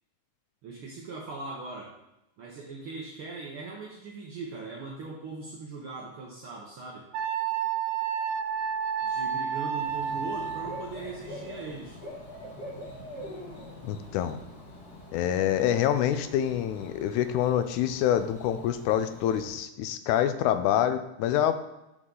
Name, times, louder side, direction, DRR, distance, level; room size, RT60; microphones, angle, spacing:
voice 1, 0.6-1.9 2.4-7.1 9.0-12.0, right 3 dB, 75° right, -2 dB, 1.2 m, -40 dB
Wind instrument woodwind instrument, 7.1-10.9, right 7 dB, 90° right, 2.2 m, -30 dB
Bird / Cricket, 9.8-19.5, left 1 dB, 40° left, 1.8 m, -44 dB
voice 2, 13.8-14.4 15.1-21.6, left 10 dB, 90° left, 10 dB, 2.0 m, -26 dB
8.1 x 4.7 x 3.8 m, 0.90 s
omnidirectional pair, 3.4 m